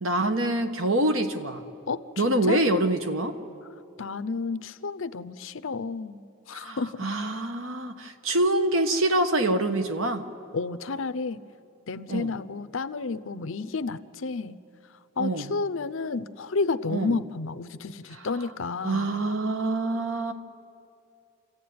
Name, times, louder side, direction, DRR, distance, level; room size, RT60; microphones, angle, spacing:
voice 1, 0.0-1.6 2.2-3.3 6.5-10.2 12.1-12.3 15.2-15.5 16.9-17.2 18.1-18.3 18.8-20.3, right 1 dB, 65° right, 7 dB, 1.4 m, -25 dB
voice 2, 1.9-2.6 4.0-7.0 10.5-11.4 11.9-14.6 15.2-19.1, left 4 dB, 65° left, 12 dB, 0.6 m, -31 dB
28.0 x 15.0 x 9.5 m, 2.7 s
head